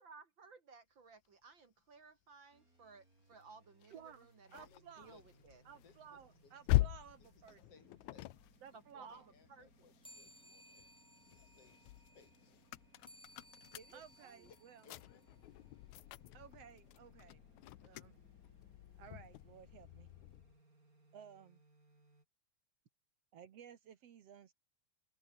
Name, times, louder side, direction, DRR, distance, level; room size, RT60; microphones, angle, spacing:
voice 1, 0.0-4.7 5.0-5.6 8.7-9.9 13.8-14.5, right 4 dB, 45° right, 2.4 m, -59 dB
sound 1, 2.5-22.2, right 2 dB, 25° right, 6.6 m, -69 dB
sound 2, 3.8-10.3 10.8-20.6, left 17 dB, 80° left, 2.1 m, -42 dB
voice 2, 3.9-5.2 5.7-7.6 8.6-9.3 13.9-14.9 16.3-17.5 17.8-18.3 19.0-20.1 21.1-21.6 23.3-24.5, right 8 dB, 60° right, 2.3 m, -56 dB
voice 3, 4.5-5.4 5.8-6.9 7.2-8.4 8.9-11.8 12.1-12.6 14.5-15.2, left 6 dB, 55° left, 3.5 m, -66 dB
sound 3, 10.0-15.9, equal, ahead, 3.3 m, -63 dB
omnidirectional pair, 3.3 m